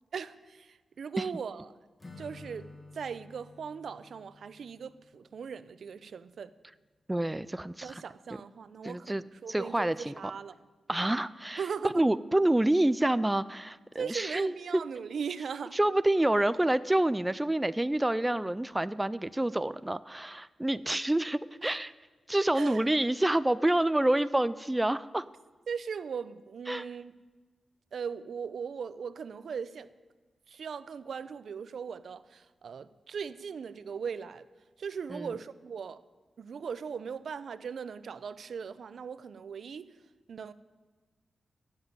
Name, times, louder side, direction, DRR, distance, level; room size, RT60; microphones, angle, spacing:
voice 1, 0.1-1.7 2.2-6.5 7.8-10.6 11.6-12.0 14.0-15.8 21.6-21.7 22.5-22.9 25.7-27.1 27.9-29.9 30.5-34.5 34.8-36.0 36.4-39.9 40.3-40.5, right 6 dB, 70° right, 0.6 m, -39 dB
Acoustic guitar / Strum, 2.0-5.9, left 2 dB, 30° left, 1.8 m, -52 dB
voice 2, 7.1-8.0 8.8-9.2 9.5-10.1 10.9-14.5 15.7-21.9 22.3-25.3 26.7-26.8 35.1-35.3, right 1 dB, 10° right, 0.3 m, -28 dB
16.0 x 7.4 x 9.5 m
wide cardioid pair, 105°, 0 cm